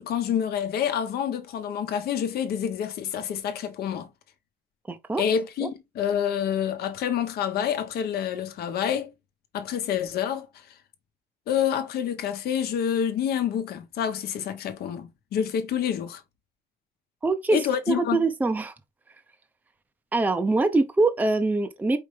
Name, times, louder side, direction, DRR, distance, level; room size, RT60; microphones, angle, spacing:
voice 1, 0.0-4.1 5.2-9.1 9.5-10.5 11.5-16.2 17.5-18.2, left 8 dB, 65° left, 1.0 m, -27 dB
voice 2, 4.9-5.2 5.6-5.7 17.2-18.7 20.1-22.0, right 3 dB, 10° right, 0.6 m, -24 dB
5.1 x 3.2 x 3.3 m
cardioid pair, 110°, 17 cm